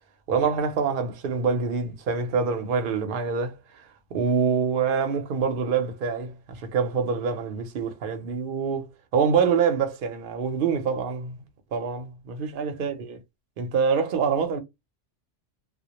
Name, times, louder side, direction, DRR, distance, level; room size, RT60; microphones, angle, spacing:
voice 1, 0.3-3.8 4.1-11.4 11.7-13.2 13.6-14.6, right 6 dB, 60° right, 0.7 m, -25 dB
2.1 x 2.0 x 2.8 m
omnidirectional pair, 1.2 m